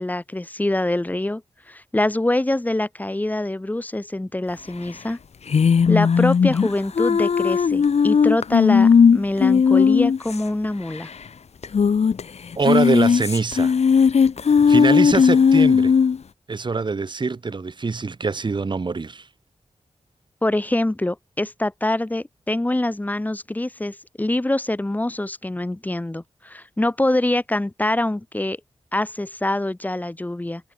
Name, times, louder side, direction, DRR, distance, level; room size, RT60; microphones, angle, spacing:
voice 1, 0.0-1.4 1.7-5.2 5.9-11.1 20.4-28.6 28.9-30.6, left 1 dB, 15° left, 3.9 m, -24 dB
sound 1, 5.5-10.4 10.6-10.7 11.0-11.1 11.6-12.2 12.5-16.2, left 6 dB, 70° left, 2.9 m, -16 dB
voice 2, 12.6-13.7 14.7-15.9 16.5-19.3, right 4 dB, 45° right, 6.2 m, -24 dB
wide cardioid pair, 125°, 11 cm